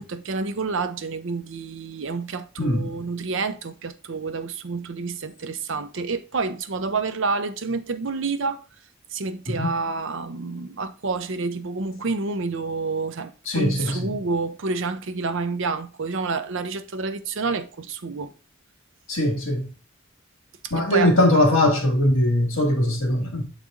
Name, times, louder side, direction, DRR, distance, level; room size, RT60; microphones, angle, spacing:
voice 1, 0.0-8.6 9.1-18.3 20.9-21.1, right 4 dB, 65° right, 0.6 m, -28 dB
voice 2, 2.6-3.0 9.5-9.7 13.5-14.2 19.1-19.7 20.7-23.5, left 1 dB, 70° left, 2.2 m, -21 dB
7.5 x 4.1 x 3.8 m
head